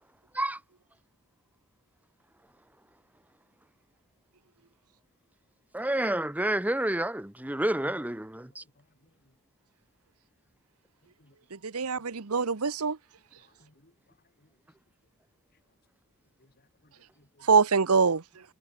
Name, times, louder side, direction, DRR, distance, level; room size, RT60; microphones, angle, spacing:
voice 1, 5.7-8.6, right 1 dB, 5° right, 0.8 m, -29 dB
voice 2, 8.8-9.1 11.2-11.4 13.4-13.9 14.4-14.5 16.4-17.5, left 1 dB, 45° left, 4.0 m, -64 dB
voice 3, 11.6-13.0 17.5-18.2, right 5 dB, 75° right, 1.0 m, -24 dB
head